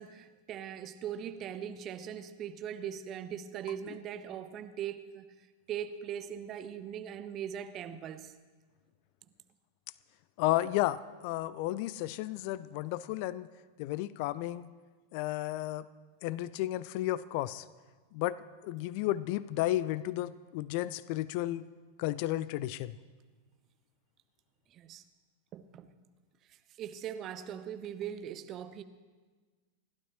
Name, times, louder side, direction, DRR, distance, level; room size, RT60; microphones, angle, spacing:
voice 1, 0.0-5.3 5.7-8.3 24.7-25.0 25.5-25.9 26.8-28.8, right 9 dB, 35° right, 10 dB, 0.8 m, -40 dB
voice 2, 10.4-13.5 13.8-14.7 15.1-15.9 16.2-17.6 18.1-18.4 18.6-21.7 22.0-23.0, left 15 dB, 45° left, 18 dB, 0.4 m, -33 dB
29.0 x 12.0 x 3.0 m, 1.4 s
figure-of-eight pair, 90°, 0 cm